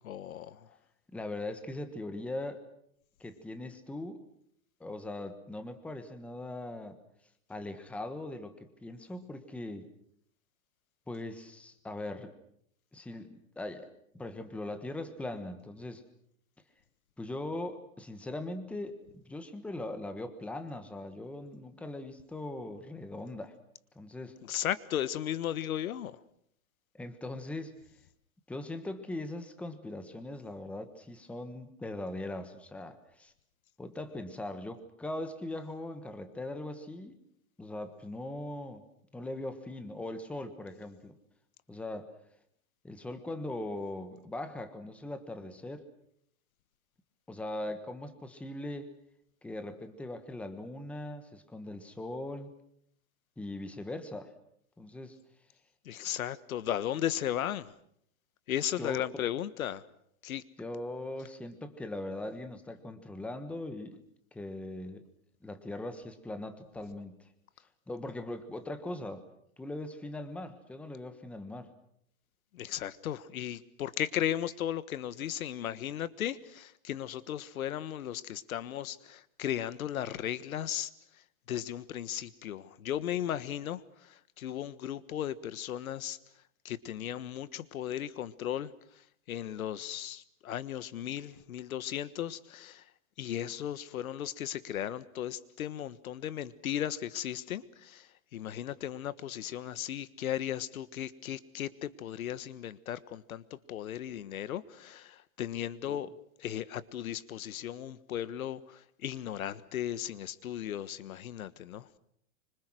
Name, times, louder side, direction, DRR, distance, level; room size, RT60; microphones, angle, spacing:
voice 1, 0.0-0.7 24.4-26.2 55.8-57.7 58.5-59.8 60.2-60.4 72.5-80.9 81.5-86.2 86.6-88.7 89.3-92.8 93.2-106.1 106.4-111.9, left 11 dB, 80° left, 16 dB, 1.5 m, -36 dB
voice 2, 1.1-2.6 3.2-4.2 4.8-7.0 7.5-9.9 11.1-12.3 12.9-13.9 14.1-16.0 17.2-23.5 23.9-24.3 26.9-27.8 28.5-33.3 33.8-37.2 37.6-38.8 39.1-41.2 41.7-42.1 42.8-45.9 47.3-48.9 49.4-52.5 53.4-54.3 54.8-55.2 58.8-59.0 60.6-64.0 64.3-65.1 65.4-67.3 67.9-69.2 69.6-71.7 105.9-106.0, left 1 dB, 5° left, 9 dB, 1.3 m, -40 dB
25.5 x 25.5 x 6.3 m, 0.70 s
supercardioid pair, 160°, 42 cm